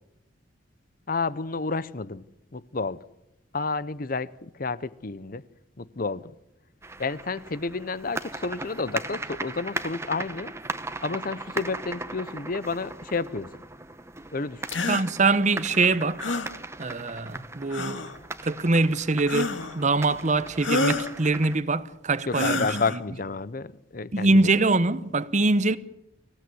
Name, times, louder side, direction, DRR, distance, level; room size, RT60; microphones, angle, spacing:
voice 1, 1.1-2.2 2.5-3.0 3.5-5.4 5.8-6.3 7.0-10.5 11.0-13.5 14.3-14.7 22.3-24.5, left 4 dB, 45° left, 0.8 m, -30 dB
sound 1, 6.8-21.6, right 2 dB, 15° right, 1.0 m, -38 dB
sound 2, 14.7-15.1 16.2-16.5 17.7-18.2 19.3-19.8 20.6-21.1 22.3-23.0, left 2 dB, 80° left, 1.9 m, -28 dB
voice 2, 14.9-16.4 16.8-18.0 18.4-22.7 24.1-25.8, right 3 dB, 40° right, 0.9 m, -23 dB
25.0 x 16.5 x 9.6 m
head